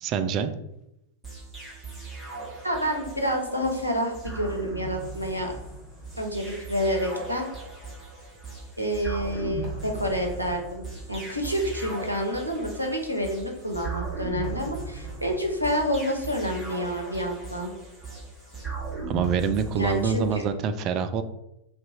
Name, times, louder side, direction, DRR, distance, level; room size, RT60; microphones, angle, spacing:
voice 1, 0.0-0.5 19.1-21.2, right 6 dB, 35° right, 10 dB, 0.3 m, -26 dB
sound 1, 1.2-20.4, right 3 dB, 10° right, 1.2 m, -38 dB
voice 2, 2.6-5.5 6.2-7.5 8.8-17.7 19.8-20.2, equal, 90° right, 1 dB, 0.6 m, -28 dB
2.7 x 2.3 x 4.0 m, 0.84 s
figure-of-eight pair, 90°, 0 cm